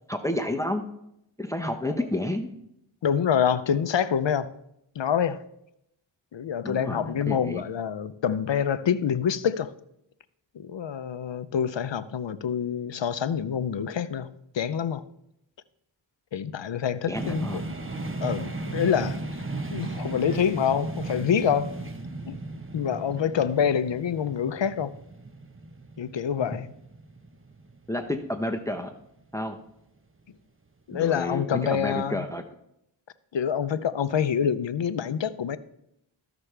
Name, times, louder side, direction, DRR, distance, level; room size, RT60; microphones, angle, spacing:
voice 1, 0.1-0.8 1.4-2.5 6.6-7.6 17.1-17.6 27.9-28.9 29.3-29.6 30.9-32.4, left 1 dB, 5° left, 0.8 m, -30 dB
voice 2, 3.0-4.5 5.0-5.4 6.3-9.7 10.6-15.0 16.3-17.6 18.2-19.2 19.7-21.7 22.3-22.4 22.7-24.9 26.0-26.7 30.9-32.2 33.3-35.6, left 8 dB, 65° left, 0.6 m, -26 dB
sound 1, 17.1-28.9, right 2 dB, 25° right, 1.0 m, -36 dB
15.0 x 6.0 x 3.3 m
cardioid pair, 45°, 48 cm